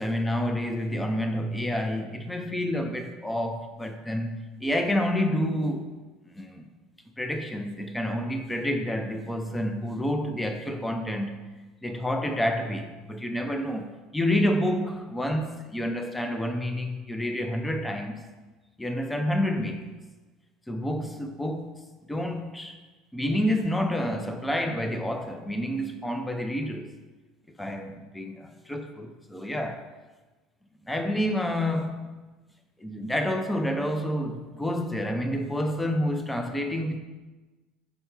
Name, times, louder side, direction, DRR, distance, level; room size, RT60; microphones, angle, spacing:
voice 1, 0.0-5.9 6.2-6.6 7.2-11.5 11.8-18.3 18.8-19.9 20.7-21.8 22.1-22.8 23.1-26.9 27.6-29.9 30.8-32.1 32.8-37.0, left 1 dB, 5° left, 0.5 m, -29 dB
5.4 x 4.4 x 5.7 m
cardioid pair, 145°, 0 cm